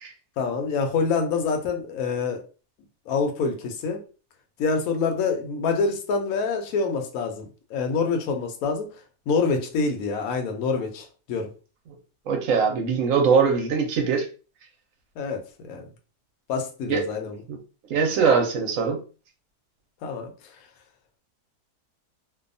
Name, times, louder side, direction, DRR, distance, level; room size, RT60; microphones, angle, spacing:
voice 1, 0.4-2.4 3.1-4.0 4.6-8.9 9.3-11.5 15.2-15.9 16.5-17.4 20.0-20.3, left 4 dB, 70° left, 4 dB, 1.0 m, -26 dB
voice 2, 12.3-14.3 16.9-17.0 17.5-17.6 17.9-19.0, right 5 dB, 65° right, 4 dB, 0.9 m, -21 dB
2.6 x 2.2 x 2.5 m, 0.35 s
omnidirectional pair, 1.6 m